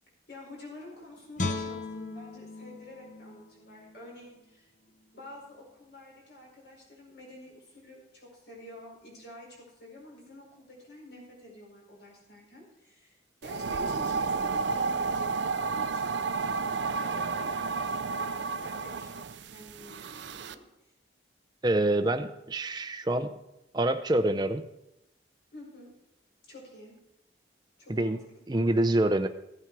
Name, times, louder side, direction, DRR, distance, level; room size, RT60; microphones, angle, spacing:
voice 1, 0.3-4.7 5.1-16.2 16.6-20.6 25.5-25.9 26.5-26.9 27.8-28.5, left 1 dB, 60° left, -2 dB, 4.8 m, -49 dB
Guitar, 1.4-4.5 4.9-5.1, left 3 dB, 40° left, 0.9 m, -37 dB
sound 1, 13.4-20.5, right 4 dB, 65° right, 0.6 m, -31 dB
voice 2, 21.6-23.3 23.7-24.6 27.9-28.2 28.5-29.3, right 1 dB, 20° right, 7 dB, 0.5 m, -26 dB
15.0 x 8.9 x 4.7 m, 0.87 s
head